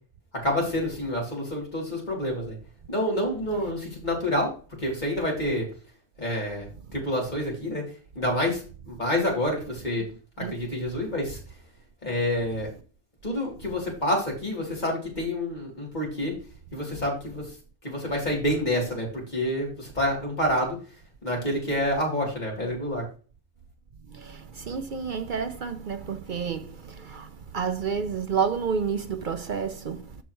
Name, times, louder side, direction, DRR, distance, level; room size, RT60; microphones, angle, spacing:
voice 1, 0.4-2.6 2.9-4.5 4.8-5.7 6.2-7.8 8.1-10.0 10.4-11.4 12.0-12.7 13.2-16.3 16.7-17.5 17.8-20.8 21.2-23.0, left 1 dB, 40° left, 3.0 m, -28 dB
voice 2, 24.1-30.2, right 6 dB, 55° right, 0.7 m, -30 dB
13.0 x 4.5 x 3.0 m
omnidirectional pair, 1.2 m